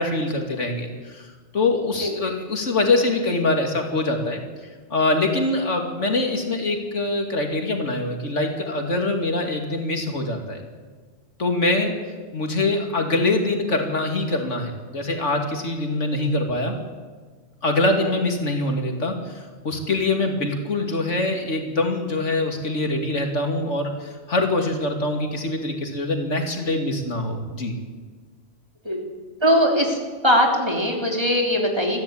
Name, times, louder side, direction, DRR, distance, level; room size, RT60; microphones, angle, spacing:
voice 1, 0.0-4.4 4.9-10.6 11.4-11.9 12.3-16.7 17.6-27.7, left 2 dB, 85° left, 3 dB, 2.9 m, -24 dB
voice 2, 29.4-30.0 30.2-32.0, equal, 20° right, 1 dB, 3.3 m, -20 dB
22.0 x 14.5 x 8.7 m, 1.5 s
omnidirectional pair, 1.2 m